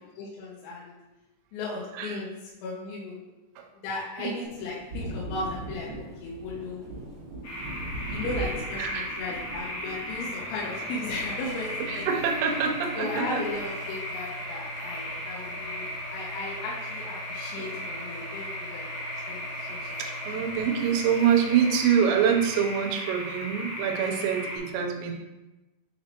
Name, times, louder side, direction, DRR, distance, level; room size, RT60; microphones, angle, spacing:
voice 1, 0.0-0.9 1.5-2.3 2.6-3.2 3.7-6.8 8.0-12.1 13.0-20.0, left 2 dB, 90° left, -5 dB, 3.7 m, -36 dB
Thunder, 4.4-14.2 14.5-15.7, right 1 dB, 50° right, 1.4 m, -40 dB
sound 1, 7.4-24.6, equal, 60° left, 2.6 m, -36 dB
sound 2, 10.3-21.7, equal, 75° left, 2.3 m, -43 dB
voice 2, 11.9-13.4 17.6-17.8 19.3-19.4 19.7-25.1, right 7 dB, 85° right, 2 dB, 3.3 m, -26 dB
8.6 x 3.9 x 2.9 m, 1.1 s
omnidirectional pair, 6.0 m